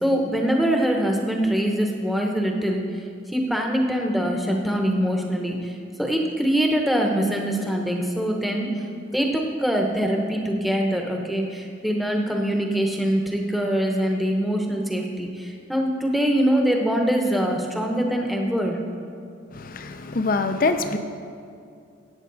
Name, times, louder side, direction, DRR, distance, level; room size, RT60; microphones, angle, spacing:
voice 1, 0.0-2.8 3.3-5.7 6.0-8.8 9.1-18.8, equal, ahead, 1 dB, 0.9 m, -23 dB
voice 2, 19.5-21.0, left 3 dB, 45° left, 8 dB, 0.6 m, -24 dB
14.5 x 8.9 x 4.0 m, 2.4 s
head